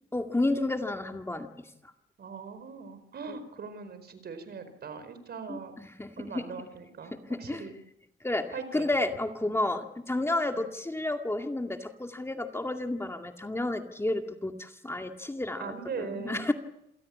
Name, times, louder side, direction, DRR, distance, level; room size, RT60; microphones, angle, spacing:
voice 1, 0.1-1.7 3.3-3.4 5.5-6.5 7.1-7.7 8.2-16.5, left 2 dB, 10° left, 5 dB, 2.1 m, -31 dB
voice 2, 2.2-5.8 6.2-7.1 7.4-7.8 8.5-8.9 9.4-9.5 10.5-10.7 15.6-16.5, right 5 dB, 55° right, 11 dB, 4.7 m, -40 dB
28.0 x 17.5 x 8.6 m, 0.81 s
cardioid pair, 90°, 20 cm